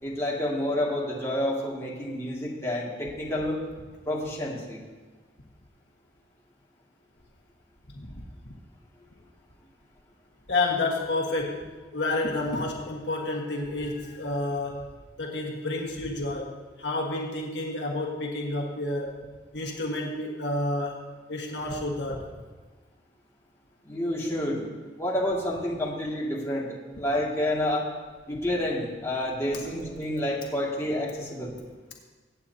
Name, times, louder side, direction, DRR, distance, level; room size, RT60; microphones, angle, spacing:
voice 1, 0.0-3.6 4.1-4.8 23.9-24.7 25.0-27.8 28.3-31.6, left 1 dB, 15° left, -5 dB, 2.1 m, -29 dB
voice 2, 10.5-11.7 11.9-14.9 15.2-19.2 19.5-22.3 29.5-29.6, left 2 dB, 70° left, -1 dB, 1.5 m, -30 dB
23.0 x 8.8 x 2.8 m, 1.3 s
head